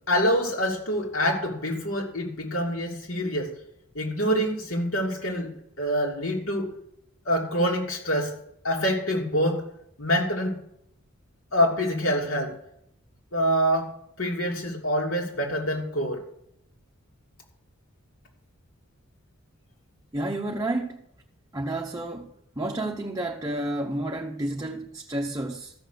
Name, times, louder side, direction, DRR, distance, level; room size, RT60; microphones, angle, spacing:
voice 1, 0.1-3.5 3.9-5.5 5.8-6.7 7.2-8.3 8.6-9.6 10.0-10.6 11.5-12.6 13.3-13.9 14.2-16.2, equal, 70° left, 2.9 m, -26 dB
voice 2, 20.1-21.0 21.5-22.3 22.6-25.7, right 1 dB, 15° right, 0.7 m, -30 dB
14.0 x 6.5 x 6.5 m
head